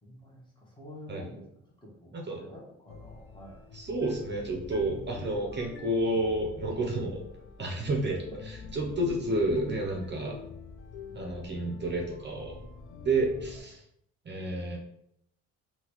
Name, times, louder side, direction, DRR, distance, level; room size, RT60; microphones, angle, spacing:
voice 1, 0.0-1.5 1.8-3.6 8.0-8.2, left 1 dB, 15° left, -3 dB, 1.1 m, -48 dB
sound 1, 2.9-13.6, left 4 dB, 40° left, 0.6 m, -45 dB
voice 2, 3.7-7.2 7.6-8.2 8.5-10.4 11.1-12.5 13.0-13.8 14.3-14.8, right 1 dB, 35° right, 0 dB, 0.6 m, -30 dB
3.7 x 2.3 x 3.0 m, 0.77 s
cardioid pair, 90°, 30 cm